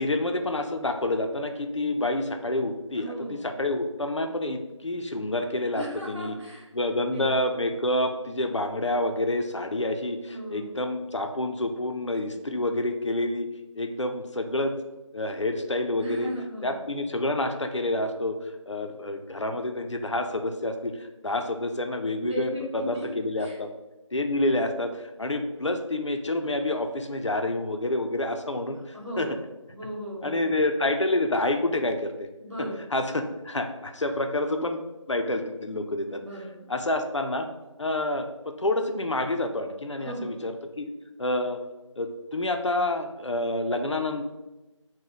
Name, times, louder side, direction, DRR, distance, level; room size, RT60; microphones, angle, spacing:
voice 1, 0.0-6.4 6.7-13.5 13.8-14.8 15.1-16.3 16.6-23.7 24.1-29.4 30.2-32.3 32.6-37.5 37.8-40.9 41.2-41.6 42.0-44.2, left 1 dB, 65° left, 6 dB, 0.4 m, -28 dB
voice 2, 3.0-3.5 5.7-7.2 10.3-10.8 16.0-16.8 22.2-23.1 23.4-23.5 28.9-29.4 29.7-30.6 32.4-32.9 36.1-36.7 40.0-40.3, equal, 60° right, -6 dB, 1.3 m, -36 dB
4.0 x 2.1 x 2.9 m, 1.0 s
figure-of-eight pair, 175°, 17 cm